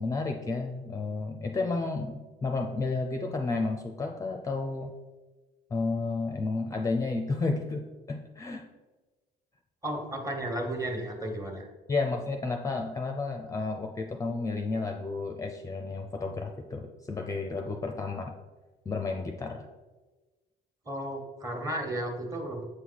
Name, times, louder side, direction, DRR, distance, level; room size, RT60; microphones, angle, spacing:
voice 1, 0.0-4.9 5.7-8.6 11.9-18.3 18.9-19.7, left 3 dB, 20° left, 3 dB, 0.5 m, -32 dB
voice 2, 9.8-11.7 20.8-22.6, right 1 dB, 20° right, 3 dB, 1.4 m, -33 dB
7.8 x 4.6 x 4.1 m, 1.2 s
cardioid pair, 110°, 17 cm